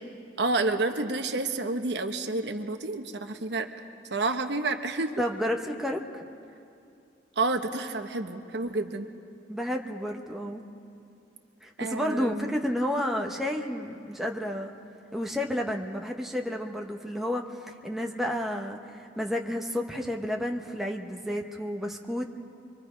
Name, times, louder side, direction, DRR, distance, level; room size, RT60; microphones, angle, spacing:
voice 1, 0.4-3.7 4.1-5.1 7.4-9.1 11.8-12.5, right 3 dB, 65° right, 6 dB, 1.0 m, -29 dB
voice 2, 5.2-6.2 9.5-10.6 11.6-14.7 15.1-22.3, equal, ahead, 1 dB, 1.0 m, -31 dB
24.5 x 24.0 x 5.1 m, 2.5 s
head